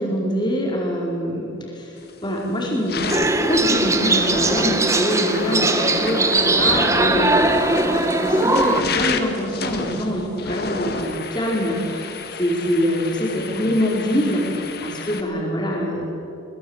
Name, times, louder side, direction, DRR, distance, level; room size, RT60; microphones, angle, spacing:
voice 1, 0.0-1.9 2.2-3.1 3.4-14.4 14.8-16.0, equal, 20° left, -2 dB, 5.0 m, -24 dB
sound 1, 2.0-2.3 2.7-15.2, left 4 dB, 50° left, 1.9 m, -30 dB
sound 2, 3.1-8.8, right 2 dB, 15° right, 1.2 m, -20 dB
22.5 x 21.5 x 8.3 m, 2.9 s
head